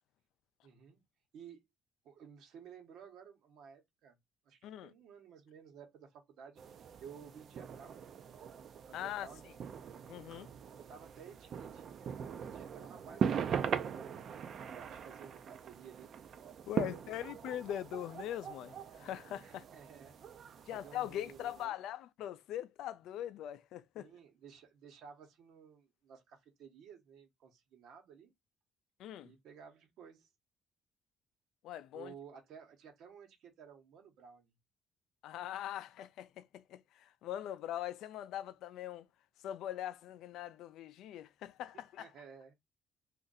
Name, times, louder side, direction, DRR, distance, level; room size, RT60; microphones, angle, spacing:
voice 1, 0.6-1.0 1.3-1.6 2.0-4.2 4.4-6.6 7.0-8.1 8.9-9.5 10.6-14.2 14.7-16.1 16.7-17.1 19.4-20.2 20.6-21.7 24.0-28.3 29.2-30.3 31.9-34.5 42.0-42.6, right 7 dB, 75° right, 1.1 m, -55 dB
sound 1, 6.6-21.6, right 7 dB, 50° right, 0.4 m, -41 dB
voice 2, 8.9-9.3 10.1-10.5 16.7-19.6 20.7-24.1 29.0-29.3 31.6-32.1 35.2-39.1 39.4-42.1, left 11 dB, 80° left, 0.3 m, -42 dB
2.6 x 2.5 x 3.9 m
cardioid pair, 125°, 0 cm